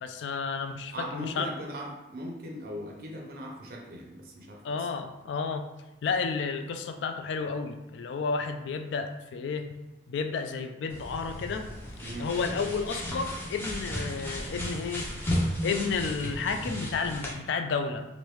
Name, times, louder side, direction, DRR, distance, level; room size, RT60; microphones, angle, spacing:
voice 1, 0.0-1.5 4.6-5.6 6.0-9.7 10.1-11.7 12.2-15.1 15.6-18.0, left 5 dB, 70° left, 7 dB, 0.3 m, -31 dB
voice 2, 0.9-4.9 12.0-12.3, equal, 50° right, 0 dB, 0.5 m, -39 dB
sound 1, 10.9-17.3, equal, 10° left, 0.5 m, -34 dB
3.1 x 2.6 x 3.1 m, 0.98 s
head